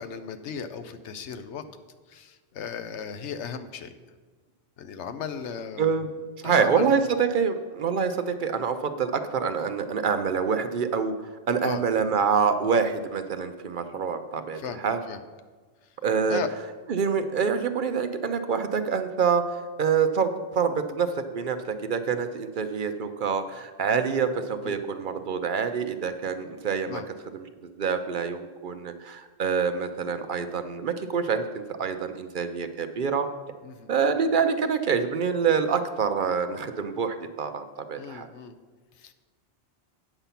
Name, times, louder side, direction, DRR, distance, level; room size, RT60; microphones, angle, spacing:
voice 1, 0.0-1.6 2.1-3.9 4.8-6.1 6.4-7.0 11.6-11.8 14.5-14.8 15.1-15.2 16.3-16.5 24.6-24.8 26.9-27.1 33.6-33.9 38.0-38.6 39.0-39.1, left 7 dB, 90° left, 10 dB, 1.0 m, -36 dB
voice 2, 5.8-6.1 6.4-15.0 16.0-16.4 16.9-27.0 27.3-33.3 33.9-38.3, right 6 dB, 55° right, 8 dB, 0.6 m, -26 dB
8.9 x 6.9 x 5.7 m, 1.4 s
omnidirectional pair, 1.2 m